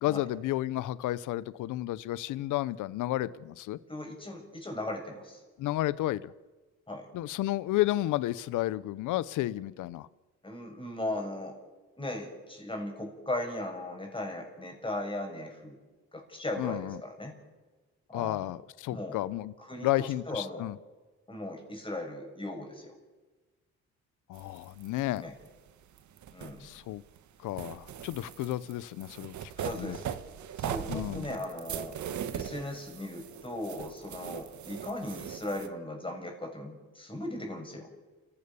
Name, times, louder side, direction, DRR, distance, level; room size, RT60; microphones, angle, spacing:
voice 1, 0.0-3.8 5.6-6.3 7.1-10.1 16.6-17.0 18.1-19.5 19.8-20.8 24.3-25.2 26.6-27.0 27.4-29.3 29.7-30.0 30.9-31.3, left 15 dB, 85° left, 19 dB, 0.7 m, -32 dB
voice 2, 3.9-5.4 6.9-7.1 10.4-11.6 12.0-15.8 16.1-17.3 18.1-18.6 18.9-19.2 19.6-20.7 21.3-22.9 25.2-25.3 26.3-26.6 29.6-30.0 30.6-32.0 32.3-37.9, left 1 dB, 15° left, 3 dB, 6.5 m, -38 dB
sound 1, 24.3-27.2 27.5-35.7, right 9 dB, 70° right, 1.5 m, -40 dB
29.0 x 15.5 x 7.0 m, 1.3 s
cardioid pair, 90°, 30 cm